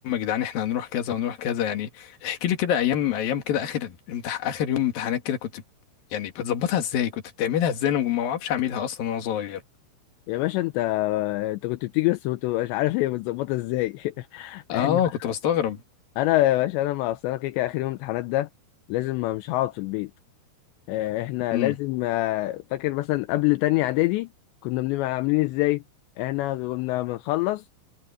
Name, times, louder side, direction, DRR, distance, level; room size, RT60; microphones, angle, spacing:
voice 1, 0.0-5.6 6.1-9.6 14.7-15.8 21.5-21.7, left 10 dB, 55° left, 3.3 m, -26 dB
voice 2, 10.3-15.0 16.2-18.5 18.9-20.1 20.9-24.3 24.6-25.8 26.2-27.6, left 17 dB, 80° left, 2.7 m, -25 dB
omnidirectional pair, 5.7 m